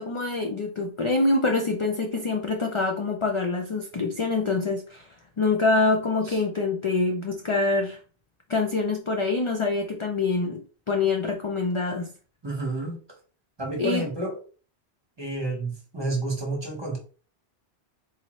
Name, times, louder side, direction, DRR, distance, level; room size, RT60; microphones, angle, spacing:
voice 1, 0.0-5.1 5.4-8.0 8.5-10.6 10.9-12.1 13.8-14.1, left 3 dB, 50° left, 3 dB, 0.3 m, -25 dB
voice 2, 12.4-13.0 13.6-14.4 15.2-17.0, right 2 dB, 25° right, 0 dB, 1.1 m, -30 dB
4.1 x 2.5 x 3.1 m, 0.38 s
omnidirectional pair, 1.1 m